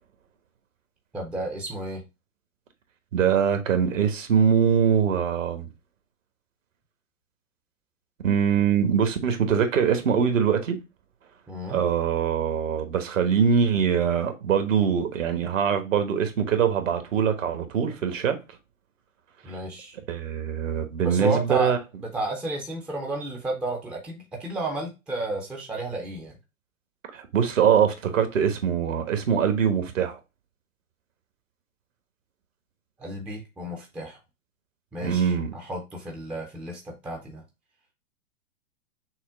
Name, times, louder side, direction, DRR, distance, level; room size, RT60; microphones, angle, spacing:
voice 1, 1.1-2.0 11.5-11.8 19.4-20.0 21.0-21.7 22.0-26.4 33.0-34.2 34.9-37.4, right 2 dB, 5° right, 0.4 m, -32 dB
voice 2, 3.1-5.7 8.2-10.8 11.7-18.4 19.5-19.6 20.1-21.8 27.1-30.2 35.0-35.5, right 7 dB, 70° right, 1.3 m, -23 dB
6.2 x 2.1 x 3.6 m
hypercardioid pair, 115°, 40 cm